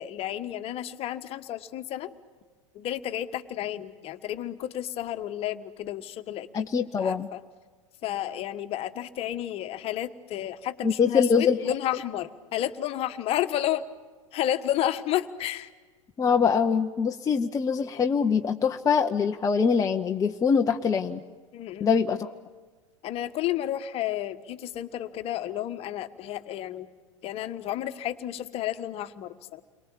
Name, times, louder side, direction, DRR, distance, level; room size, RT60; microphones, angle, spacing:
voice 1, 0.0-2.1 2.7-7.4 8.0-13.8 14.3-15.7 21.5-21.9 23.0-26.9 27.2-29.6, left 12 dB, 35° left, 10 dB, 1.4 m, -31 dB
voice 2, 6.5-7.3 10.8-11.6 16.2-21.2 21.8-22.3, left 6 dB, 20° left, 4 dB, 0.9 m, -23 dB
30.0 x 23.5 x 7.2 m, 1.4 s
figure-of-eight pair, 85°, 17 cm